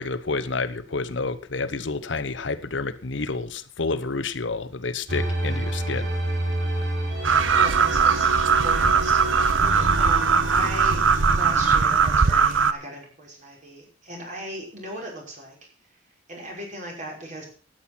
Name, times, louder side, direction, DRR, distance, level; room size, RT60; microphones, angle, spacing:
voice 1, 0.0-6.1, left 3 dB, 70° left, 0.9 m, -29 dB
sound 1, 5.1-12.4, right 1 dB, 65° right, 4.4 m, -29 dB
sound 2, 7.2-12.7, right 5 dB, 90° right, 0.9 m, -20 dB
voice 2, 7.6-8.3 8.6-11.0 11.3-15.6 15.9-16.0 16.3-17.5, right 1 dB, 40° right, 5.6 m, -38 dB
13.0 x 9.1 x 6.0 m
head